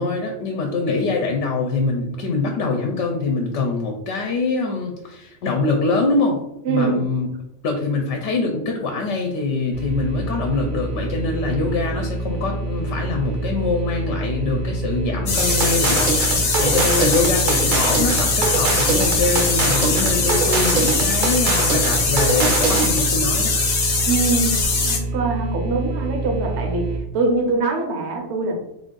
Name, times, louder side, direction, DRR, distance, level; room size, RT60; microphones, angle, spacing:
voice 1, 0.0-6.4 6.7-7.3 7.6-23.6, left 3 dB, 80° left, 2 dB, 0.9 m, -24 dB
voice 2, 6.6-7.0 24.1-26.9 27.1-28.5, right 3 dB, 70° right, 1 dB, 1.0 m, -23 dB
sound 1, 9.7-27.0, right 2 dB, 85° right, 1.2 m, -27 dB
sound 2, 15.3-25.0, left 4 dB, 50° left, 0.6 m, -21 dB
sound 3, 15.4-23.0, right 5 dB, 55° right, 0.7 m, -23 dB
3.6 x 2.5 x 3.7 m, 0.85 s
omnidirectional pair, 1.2 m